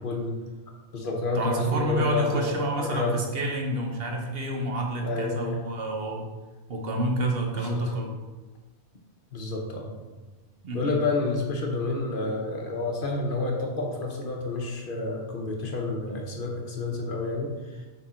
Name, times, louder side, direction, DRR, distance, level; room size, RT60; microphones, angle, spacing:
voice 1, 0.0-0.3 0.9-3.2 5.0-5.6 7.5-7.9 9.3-9.9 10.7-17.9, left 3 dB, 55° left, 0 dB, 1.0 m, -29 dB
voice 2, 1.3-6.3 6.7-8.1 10.6-11.0, right 1 dB, 65° right, 2 dB, 1.1 m, -29 dB
6.2 x 3.8 x 4.3 m, 1.2 s
omnidirectional pair, 1.1 m